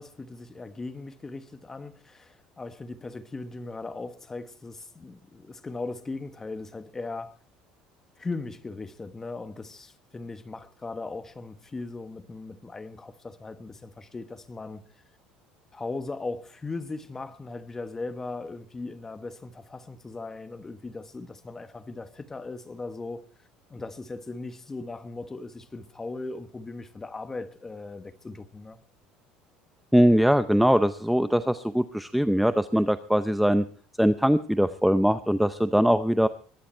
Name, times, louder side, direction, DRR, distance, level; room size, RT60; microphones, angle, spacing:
voice 1, 0.0-7.4 8.2-14.8 15.7-28.8, left 3 dB, 15° left, 1.2 m, -38 dB
voice 2, 29.9-33.7 34.0-36.3, equal, ahead, 0.6 m, -22 dB
22.0 x 10.0 x 4.5 m
cardioid pair, 130°, 3 cm